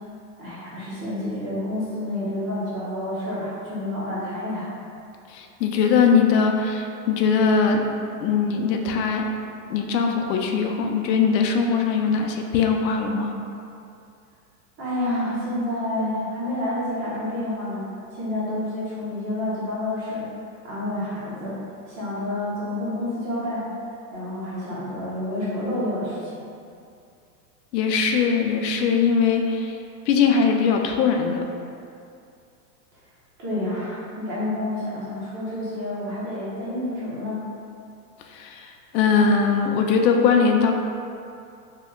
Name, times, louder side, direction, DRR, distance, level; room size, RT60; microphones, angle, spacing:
voice 1, 0.4-4.7 14.8-17.8 18.1-20.3 20.6-21.6 21.9-23.7 24.1-26.4 33.4-37.4, left 1 dB, 25° right, -8 dB, 0.7 m, -29 dB
voice 2, 5.3-7.8 8.2-9.3 9.7-13.3 27.7-29.8 30.1-31.4 38.3-40.7, left 5 dB, 80° left, 3 dB, 0.5 m, -21 dB
2.9 x 2.1 x 3.5 m, 2.5 s
supercardioid pair, 140°, 49 cm